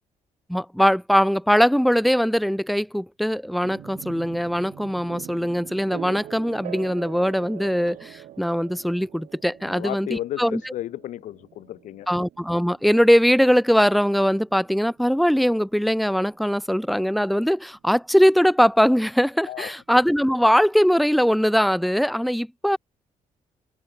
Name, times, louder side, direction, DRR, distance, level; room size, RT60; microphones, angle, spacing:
voice 1, 0.5-10.7 12.1-22.8, equal, ahead, 1.3 m, -21 dB
sound 1, 3.6-17.4, right 12 dB, 75° right, 5.9 m, -44 dB
voice 2, 9.7-10.4 10.7-12.1 19.5-19.7, left 13 dB, 80° left, 1.1 m, -32 dB
cardioid pair, 170°, 13 cm